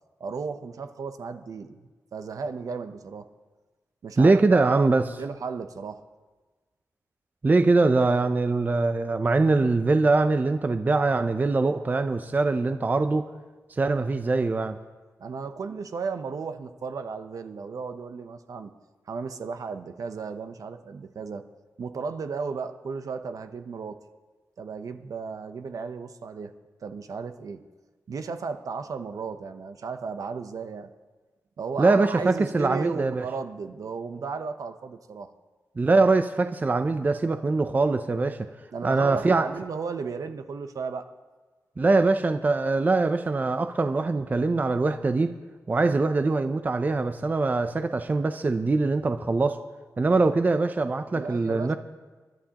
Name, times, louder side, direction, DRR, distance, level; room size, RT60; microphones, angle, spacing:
voice 1, 0.2-1.8 2.1-3.3 4.0-4.9 5.2-6.0 15.2-18.7 19.1-21.4 21.8-24.0 24.6-26.5 26.8-27.6 28.1-30.9 31.6-35.3 38.7-41.1 51.1-51.8, right 5 dB, 65° right, 8 dB, 0.8 m, -34 dB
voice 2, 4.2-5.0 7.4-13.2 13.7-14.8 31.8-33.2 35.8-38.5 38.8-39.4 41.8-45.3 45.7-49.6 50.0-51.8, right 3 dB, 30° right, 9 dB, 0.5 m, -23 dB
29.0 x 11.5 x 2.9 m, 1.3 s
wide cardioid pair, 135°, 6 cm